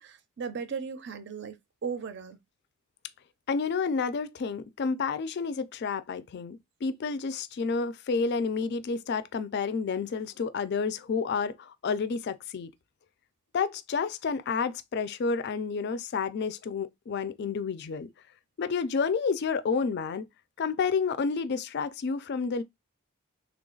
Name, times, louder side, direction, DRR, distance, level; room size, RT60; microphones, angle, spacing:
voice 1, 0.0-1.5 1.8-2.4, right 6 dB, 55° right, 0.5 m, -36 dB
voice 2, 3.5-12.7 13.5-18.1 18.6-20.2 20.6-22.6, left 5 dB, 50° left, 0.4 m, -30 dB
3.3 x 2.4 x 3.8 m
head